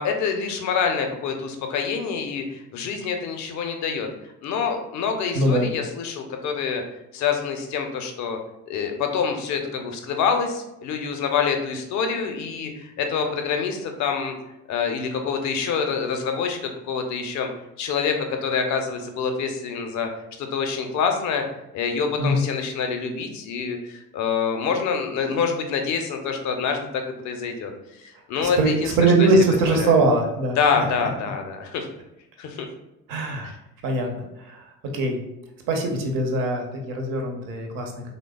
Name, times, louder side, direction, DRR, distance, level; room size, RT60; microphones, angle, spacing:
voice 1, 0.0-4.1 4.4-6.8 7.1-8.4 8.7-14.4 14.7-17.5 17.8-20.1 20.4-21.4 21.7-27.7 28.0-29.3 29.8-30.0 30.6-31.9 32.4-32.7 33.4-33.6, left 6 dB, 45° left, 5 dB, 0.5 m, -26 dB
voice 2, 5.4-5.7 22.2-22.4 28.4-30.8 33.1-33.5 33.8-34.1 34.5-34.6 34.9-35.2 35.7-38.1, right 2 dB, 50° right, 3 dB, 0.7 m, -21 dB
3.2 x 2.0 x 2.2 m, 0.89 s
figure-of-eight pair, 55°, 44 cm